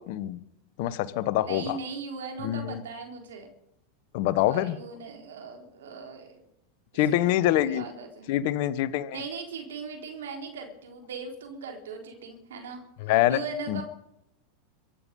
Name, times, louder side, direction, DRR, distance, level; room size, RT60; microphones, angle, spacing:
voice 1, 0.1-0.4 0.8-1.8 2.4-2.8 4.1-4.8 6.9-7.8 8.3-9.2 13.0-13.4 13.7-13.8, left 13 dB, 60° left, 15 dB, 1.1 m, -25 dB
voice 2, 1.4-3.5 4.5-6.4 7.1-8.3 9.1-12.8 13.3-13.8, right 4 dB, 75° right, 3 dB, 3.9 m, -39 dB
24.0 x 10.5 x 5.4 m, 0.80 s
hypercardioid pair, 90°, 0 cm